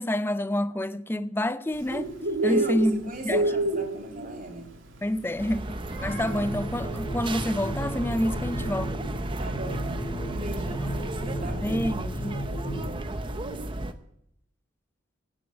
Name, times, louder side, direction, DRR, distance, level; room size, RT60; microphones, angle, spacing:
voice 1, 0.0-2.1 2.4-3.5 5.0-9.0 10.7-10.9 11.4-12.4, left 1 dB, 10° left, 0.5 m, -28 dB
Bird, 1.7-13.9, right 2 dB, 85° right, 2.5 m, -33 dB
voice 2, 2.4-4.7 9.4-11.6, right 2 dB, 45° right, 2.8 m, -39 dB
sound 1, 5.4-13.9, right 1 dB, 25° right, 0.7 m, -33 dB
sound 2, 6.1-12.9, equal, 70° left, 4.9 m, -35 dB
17.5 x 7.1 x 10.0 m
head